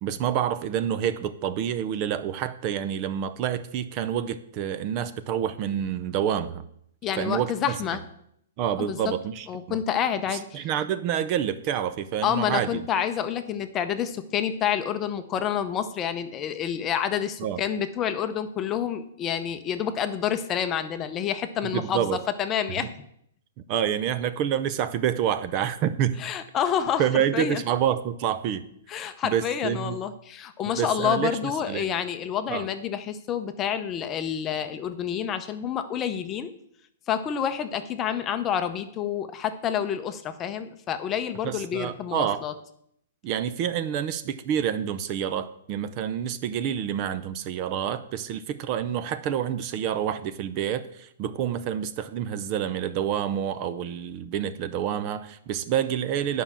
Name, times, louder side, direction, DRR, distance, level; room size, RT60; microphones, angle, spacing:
voice 1, 0.0-6.6 7.2-7.5 8.6-9.8 10.3-12.8 17.4-17.6 21.6-22.2 22.8-22.9 23.7-26.2 27.0-28.6 29.2-30.0 30.6-31.9 32.5-32.7 41.4-42.4 43.2-56.4, right 9 dB, 30° right, 12 dB, 0.6 m, -28 dB
voice 2, 7.0-8.0 8.8-9.1 9.5-10.7 12.2-22.9 26.2-27.1 27.3-27.6 28.9-36.5 37.1-42.5, left 9 dB, 20° left, 9 dB, 0.7 m, -28 dB
9.7 x 5.5 x 7.3 m, 0.71 s
hypercardioid pair, 160°, 0 cm